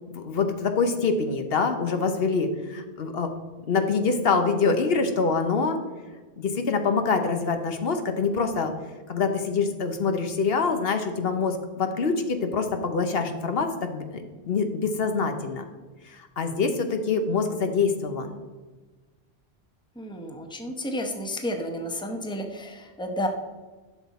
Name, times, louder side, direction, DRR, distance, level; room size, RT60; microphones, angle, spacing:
voice 1, 0.1-3.3 3.7-5.8 6.4-8.7 9.1-15.6 16.0-18.4, left 4 dB, 70° left, 7 dB, 1.1 m, -25 dB
voice 2, 20.0-23.3, equal, 5° left, 4 dB, 0.9 m, -31 dB
11.5 x 6.3 x 4.1 m, 1.3 s
omnidirectional pair, 1.0 m